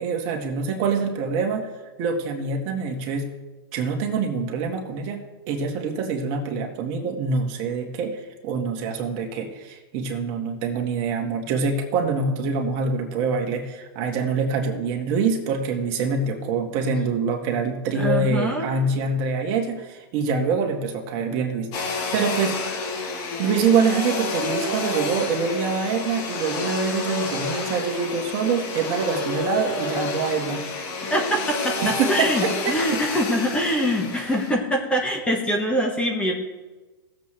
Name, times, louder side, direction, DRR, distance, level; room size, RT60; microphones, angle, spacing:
voice 1, 0.0-1.7 2.0-3.3 3.7-22.7 23.4-30.6 31.8-33.0, right 5 dB, 40° right, 2 dB, 1.8 m, -25 dB
voice 2, 17.9-18.7 31.0-36.3, equal, 10° left, 1 dB, 1.5 m, -24 dB
Domestic sounds home sounds, 21.7-34.5, left 3 dB, 40° left, 2.0 m, -29 dB
18.5 x 7.5 x 3.3 m, 1.2 s
hypercardioid pair, 135°, 14 cm